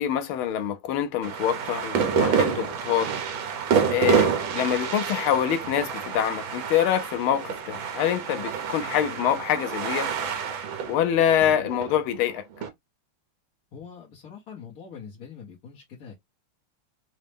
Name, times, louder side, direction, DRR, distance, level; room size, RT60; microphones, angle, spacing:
voice 1, 0.0-3.1 3.9-10.1 10.9-12.4, left 10 dB, 80° left, 1.4 m, -25 dB
sound 1, 1.2-12.7, right 7 dB, 70° right, 1.5 m, -28 dB
voice 2, 13.7-16.1, left 6 dB, 55° left, 1.2 m, -43 dB
4.0 x 2.1 x 3.3 m
omnidirectional pair, 2.4 m